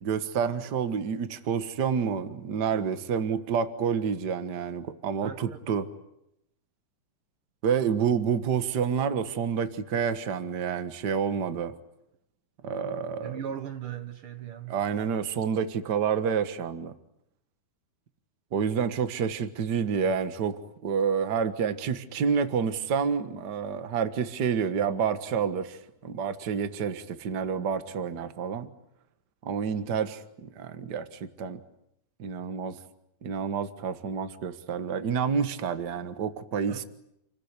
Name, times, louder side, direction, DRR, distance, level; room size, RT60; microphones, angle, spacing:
voice 1, 0.0-5.9 7.6-11.7 12.6-13.4 14.7-16.9 18.5-28.7 29.4-31.6 32.2-32.8 33.2-36.8, right 6 dB, 90° right, 0.9 m, -29 dB
voice 2, 5.2-5.6 13.2-14.8 36.7-36.8, right 9 dB, 65° right, 1.3 m, -38 dB
29.0 x 20.5 x 9.8 m
omnidirectional pair, 4.4 m